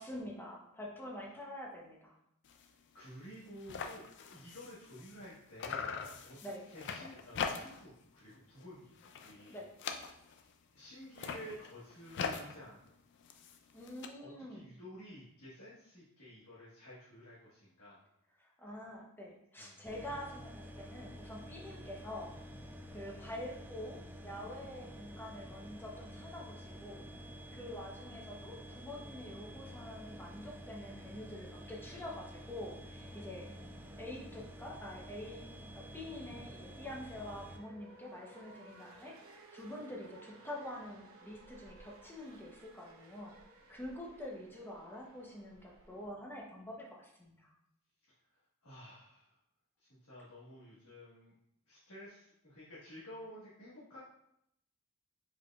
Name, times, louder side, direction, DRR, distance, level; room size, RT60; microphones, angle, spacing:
voice 1, 0.0-2.2 6.4-6.6 9.5-9.7 13.7-14.7 18.4-22.3 22.9-27.0 27.5-33.5 34.0-35.5 35.7-39.1 39.5-43.3 43.7-47.5, left 1 dB, 10° left, -2 dB, 0.8 m, -46 dB
sound 1, 2.4-2.7 3.0-3.1 3.3-5.3 5.6-8.0 8.3-8.7 9.0-10.5 11.0-14.1, left 6 dB, 55° left, 0.4 m, -42 dB
voice 2, 2.9-4.0 4.3-5.9 6.2-6.4 6.7-9.0 9.2-9.5 9.9-12.8 14.2-18.0 19.6-19.8 48.3-49.4 49.8-51.3 51.7-54.0, equal, 80° left, -10 dB, 1.5 m, -52 dB
sound 2, 19.9-37.6, equal, 10° right, 0.4 m, -50 dB
sound 3, 33.0-46.1, right 2 dB, 70° right, 0.8 m, -60 dB
4.7 x 4.6 x 2.4 m, 0.77 s
head